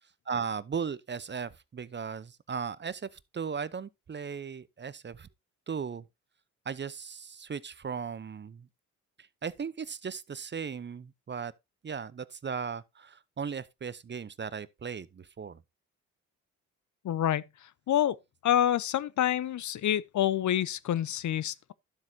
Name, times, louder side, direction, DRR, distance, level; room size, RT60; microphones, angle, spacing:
voice 1, 0.3-5.3 5.7-6.0 6.7-8.7 9.4-11.5 11.8-15.6, right 6 dB, 30° right, 0.7 m, -37 dB
voice 2, 17.0-17.4 17.9-18.2 18.4-21.7, left 11 dB, 50° left, 0.7 m, -27 dB
12.0 x 7.4 x 2.7 m
hypercardioid pair, 55°, 37 cm